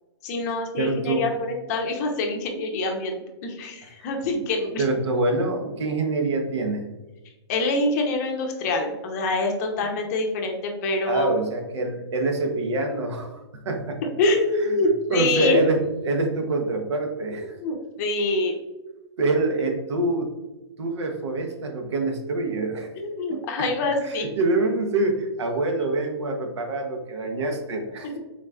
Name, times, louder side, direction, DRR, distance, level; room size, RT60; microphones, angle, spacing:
voice 1, 0.2-4.8 7.5-11.3 14.2-15.6 17.6-18.6 23.0-24.3 28.0-28.1, left 2 dB, 35° left, 2 dB, 0.6 m, -25 dB
voice 2, 0.8-1.3 4.8-6.9 11.1-14.0 15.1-17.5 19.2-20.3 20.8-22.9 23.3-23.4 24.4-28.2, right 2 dB, 70° right, 4 dB, 0.8 m, -25 dB
3.8 x 3.1 x 2.3 m, 1.1 s
hypercardioid pair, 145°, 15 cm